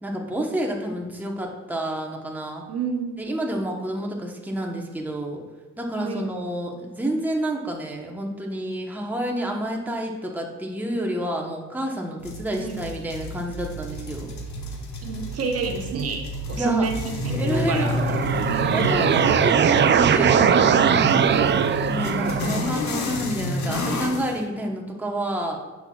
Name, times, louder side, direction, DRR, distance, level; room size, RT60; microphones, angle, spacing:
voice 1, 0.0-2.6 3.2-5.4 5.8-14.3 16.6-16.9 17.3-20.9 21.9-25.6, right 1 dB, 5° right, 0 dB, 1.1 m, -29 dB
voice 2, 2.7-3.1 6.0-6.3 12.6-12.8 15.0-17.9 18.6-19.1, right 5 dB, 55° right, 2 dB, 1.0 m, -29 dB
sound 1, 12.2-24.4, left 1 dB, 70° left, 1.3 m, -30 dB
sound 2, 17.7-22.7, right 7 dB, 40° right, 0.4 m, -20 dB
10.5 x 6.0 x 2.3 m, 1.2 s
cardioid pair, 90°, 30 cm